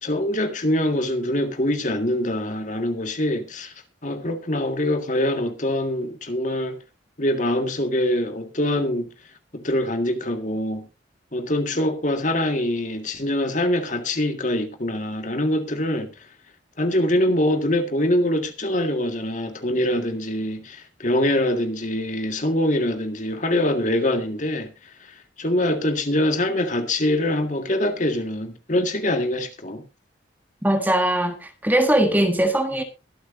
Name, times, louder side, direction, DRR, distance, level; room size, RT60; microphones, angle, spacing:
voice 1, 0.0-3.7 4.0-6.8 7.2-9.1 9.5-10.8 11.3-16.1 16.8-24.7 25.4-29.8, left 1 dB, 40° left, 1.9 m, -24 dB
voice 2, 30.6-32.8, right 1 dB, 10° right, 1.6 m, -20 dB
22.5 x 8.1 x 2.7 m
head